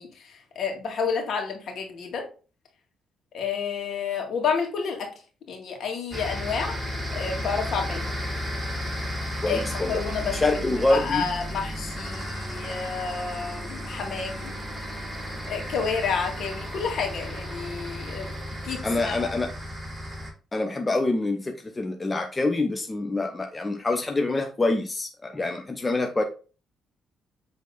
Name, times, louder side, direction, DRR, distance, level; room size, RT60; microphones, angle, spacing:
voice 1, 0.0-2.2 3.3-5.1 5.5-6.7 7.1-8.1 9.5-9.6 9.9-14.6 15.5-18.3 18.6-19.3, left 6 dB, 65° left, 2 dB, 2.0 m, -30 dB
sound 1, 6.1-20.3, equal, 10° right, 3.6 m, -33 dB
voice 2, 9.4-10.0 10.3-11.2 18.8-19.5 20.5-26.2, left 2 dB, 20° left, 4 dB, 0.8 m, -26 dB
7.4 x 3.5 x 3.9 m, 0.35 s
cardioid pair, 90°, 0 cm